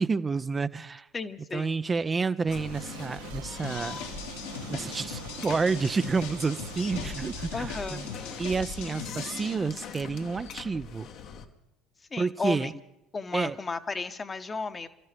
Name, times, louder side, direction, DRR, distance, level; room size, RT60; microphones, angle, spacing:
voice 1, 0.0-1.1 1.5-4.0 4.7-8.0 8.4-11.1 12.2-12.7 13.3-13.6, right 4 dB, 25° right, 0.5 m, -29 dB
voice 2, 1.1-1.8 7.5-8.1 12.1-12.7 13.1-14.9, left 4 dB, 25° left, 1.1 m, -34 dB
sound 1, 2.5-11.4, left 7 dB, 55° left, 1.3 m, -42 dB
sound 2, 2.6-9.1, right 10 dB, 75° right, 0.9 m, -45 dB
sound 3, 3.6-9.5, left 6 dB, 75° left, 2.3 m, -41 dB
27.5 x 14.0 x 3.4 m
figure-of-eight pair, 60°, 0 cm